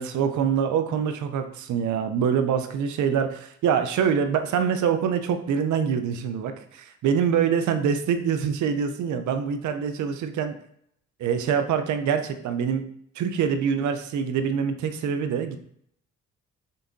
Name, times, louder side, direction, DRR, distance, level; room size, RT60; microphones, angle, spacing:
voice 1, 0.0-10.5 11.2-12.8 13.2-15.6, right 7 dB, 75° right, 8 dB, 0.7 m, -25 dB
5.4 x 3.5 x 2.7 m, 0.67 s
cardioid pair, 90°, 30 cm